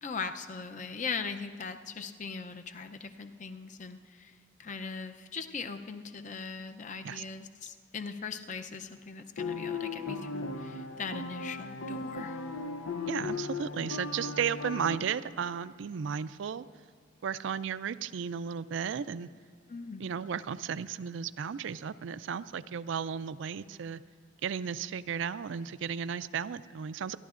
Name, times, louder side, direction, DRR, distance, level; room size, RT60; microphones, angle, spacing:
voice 1, 0.0-4.3 4.6-12.4 19.7-20.1, left 5 dB, 40° left, 8 dB, 0.5 m, -40 dB
sound 1, 9.4-15.0, left 3 dB, 85° left, 0.6 m, -37 dB
voice 2, 13.1-16.6 17.2-19.3 20.0-24.0 24.4-27.2, right 7 dB, 70° right, 15 dB, 0.3 m, -34 dB
27.0 x 11.0 x 2.5 m, 2.1 s
head